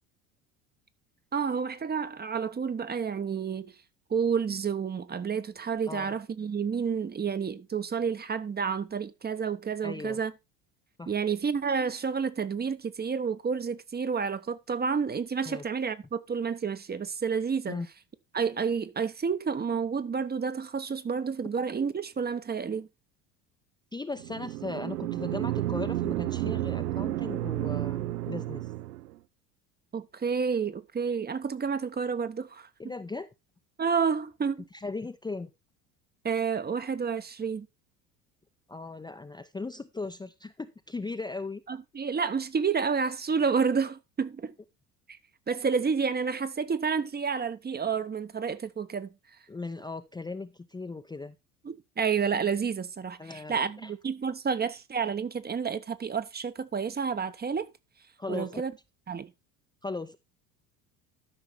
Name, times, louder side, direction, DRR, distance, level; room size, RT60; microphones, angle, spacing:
voice 1, 1.3-3.7 4.1-10.3 11.1-17.8 18.3-22.9 29.9-32.7 33.8-34.7 36.2-37.7 41.7-44.5 45.1-45.2 45.5-49.1 51.6-57.7 58.3-58.7 59.1-59.3, right 6 dB, 20° right, 0.9 m, -30 dB
voice 2, 9.8-10.2 11.0-11.1 15.5-15.6 17.7-17.9 23.9-28.6 32.8-33.3 34.7-35.5 38.7-41.6 49.5-51.3 53.2-53.9 58.2-58.6 59.8-60.2, left 3 dB, 10° left, 0.7 m, -37 dB
sound 1, 24.2-29.1, right 15 dB, 80° right, 0.6 m, -31 dB
13.0 x 5.8 x 4.2 m
hypercardioid pair, 70°, 48 cm